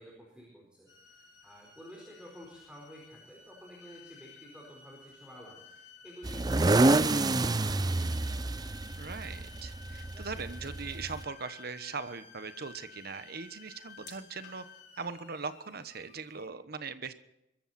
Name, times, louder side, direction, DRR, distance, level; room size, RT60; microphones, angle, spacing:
voice 1, 0.0-5.6 6.0-8.1, equal, 5° right, -2 dB, 4.4 m, -51 dB
sound 1, 0.9-16.5, left 5 dB, 65° left, 4.1 m, -54 dB
sound 2, 6.2-11.2, right 2 dB, 20° right, 0.5 m, -28 dB
voice 2, 9.0-14.6 15.0-17.1, right 5 dB, 60° right, 11 dB, 1.1 m, -40 dB
23.5 x 13.5 x 4.3 m, 0.88 s
head